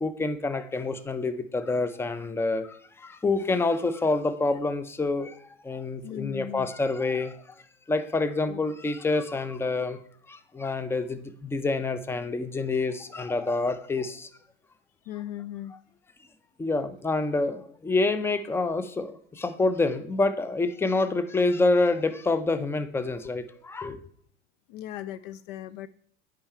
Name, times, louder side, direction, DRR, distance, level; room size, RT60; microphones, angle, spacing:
voice 1, 0.0-7.4 7.9-10.0 10.3-14.3 16.6-24.0, left 3 dB, 5° left, 11 dB, 0.6 m, -27 dB
voice 2, 6.0-6.7 8.5-8.6 15.1-15.7 24.7-25.9, left 12 dB, 50° left, 17 dB, 0.5 m, -37 dB
8.6 x 5.1 x 4.4 m, 0.62 s
hypercardioid pair, 80°, 37 cm